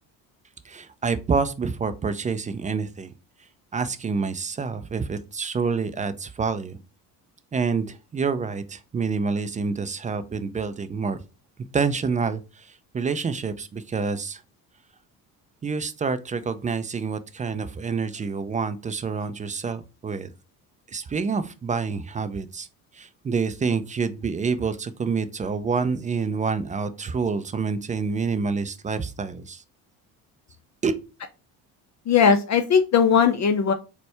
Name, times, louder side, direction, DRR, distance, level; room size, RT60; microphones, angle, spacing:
voice 1, 0.7-3.1 3.7-6.8 7.5-11.2 11.7-14.4 15.6-20.3 20.9-22.7 22.9-29.6 30.8-31.0, right 5 dB, 20° right, 0.3 m, -27 dB
voice 2, 32.1-33.7, left 6 dB, 40° left, 0.5 m, -18 dB
4.1 x 2.2 x 4.5 m
hypercardioid pair, 60°, 46 cm